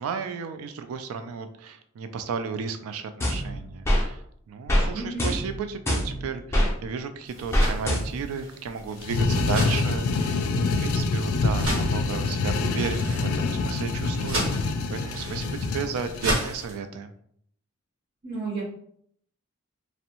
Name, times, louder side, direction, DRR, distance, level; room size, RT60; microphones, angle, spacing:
voice 1, 0.0-17.1, right 5 dB, 85° right, 9 dB, 0.3 m, -34 dB
sound 1, 3.2-4.1 4.7-4.9 5.2-6.7 7.5-8.3, equal, 10° left, 0.4 m, -24 dB
voice 2, 4.9-5.3 18.2-18.6, right 3 dB, 45° right, -6 dB, 0.7 m, -32 dB
sound 2, 7.3-16.8, right 1 dB, 65° right, 1.0 m, -35 dB
sound 3, 9.0-16.4, left 3 dB, 85° left, 0.3 m, -26 dB
2.6 x 2.0 x 2.8 m, 0.66 s
head